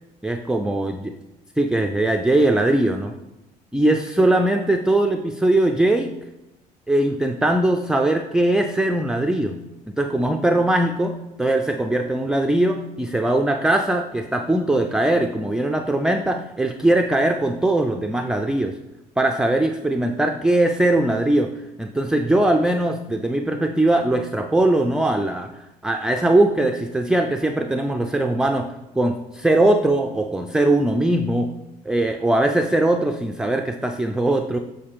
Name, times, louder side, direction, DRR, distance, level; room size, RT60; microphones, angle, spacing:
voice 1, 0.2-1.0 1.6-3.1 3.7-6.1 6.9-9.5 10.0-11.1 11.4-18.8 19.2-25.5 25.8-28.7 29.0-31.5 31.9-34.6, right 1 dB, 5° right, 4 dB, 0.4 m, -20 dB
8.5 x 4.1 x 3.4 m, 0.99 s
hypercardioid pair, 60°, 20 cm